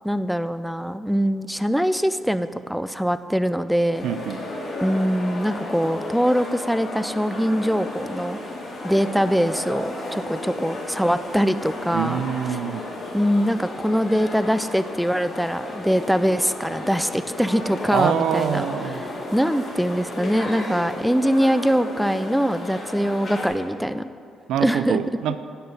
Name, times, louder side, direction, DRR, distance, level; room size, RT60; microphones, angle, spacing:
voice 1, 0.0-4.1 4.8-8.4 8.8-12.2 13.1-24.1 24.6-25.0, equal, ahead, 12 dB, 0.3 m, -23 dB
sound 1, 3.9-23.5, left 1 dB, 40° left, 1.9 m, -34 dB
voice 2, 4.0-4.4 11.9-12.8 17.9-19.0 24.5-25.4, right 9 dB, 85° right, 12 dB, 0.3 m, -25 dB
8.9 x 4.0 x 6.5 m, 2.4 s
cardioid pair, 90°, 0 cm